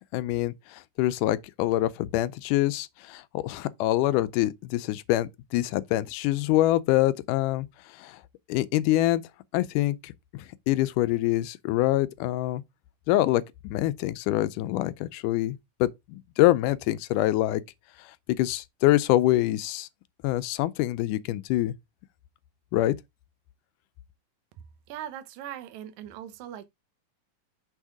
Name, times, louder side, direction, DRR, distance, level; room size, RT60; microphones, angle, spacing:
voice 1, 0.1-7.7 8.0-8.2 8.5-9.2 9.5-12.6 13.1-17.6 18.3-19.9 20.2-21.7 22.7-22.9, left 16 dB, 85° left, 2.1 m, -25 dB
voice 2, 24.9-26.7, right 11 dB, 75° right, 2.1 m, -40 dB
6.3 x 3.6 x 4.8 m
omnidirectional pair, 3.7 m